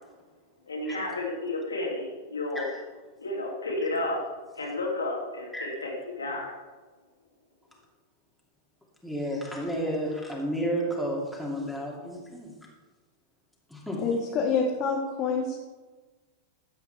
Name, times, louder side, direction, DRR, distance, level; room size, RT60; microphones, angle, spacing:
voice 1, 0.7-2.7 3.2-4.2 4.5-6.5, left 2 dB, 75° left, -2 dB, 2.7 m, -32 dB
voice 2, 9.0-12.5 13.7-14.0, equal, ahead, -3 dB, 2.5 m, -31 dB
voice 3, 14.0-15.6, left 5 dB, 35° left, 0 dB, 1.4 m, -27 dB
13.0 x 8.3 x 3.4 m, 1.3 s
figure-of-eight pair, 90°, 0 cm